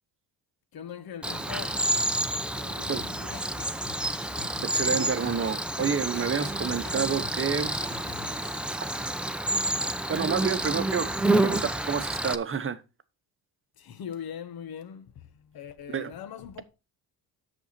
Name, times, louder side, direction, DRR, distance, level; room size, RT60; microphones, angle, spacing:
voice 1, 0.7-1.9 2.6-3.5 7.1-7.2 13.8-16.7, left 8 dB, 55° left, 1.1 m, -41 dB
Cricket, 1.2-12.4, right 1 dB, ahead, 0.7 m, -29 dB
sound 1, 3.0-8.6, left 5 dB, 25° left, 1.3 m, -45 dB
voice 2, 4.6-7.8 10.1-11.1 11.4-12.8 15.9-16.1, right 6 dB, 30° right, 1.0 m, -29 dB
8.2 x 6.4 x 4.2 m
supercardioid pair, 80°, 43 cm